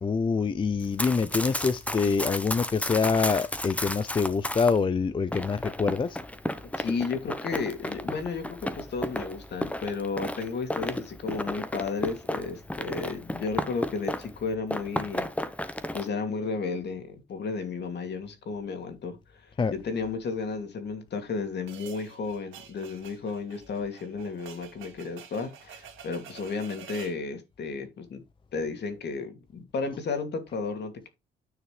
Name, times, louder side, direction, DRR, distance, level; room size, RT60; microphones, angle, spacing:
voice 1, 0.0-6.2 19.6-19.7, left 5 dB, 25° left, 0.5 m, -25 dB
Run, 0.8-4.8 5.3-14.4 14.7-16.1, left 1 dB, 5° left, 1.1 m, -33 dB
voice 2, 6.8-15.3 15.9-28.2 28.5-31.1, left 4 dB, 60° left, 2.6 m, -33 dB
sound 1, 21.7-27.2, right 8 dB, 85° right, 2.1 m, -48 dB
9.6 x 6.0 x 3.3 m
cardioid pair, 90°, 20 cm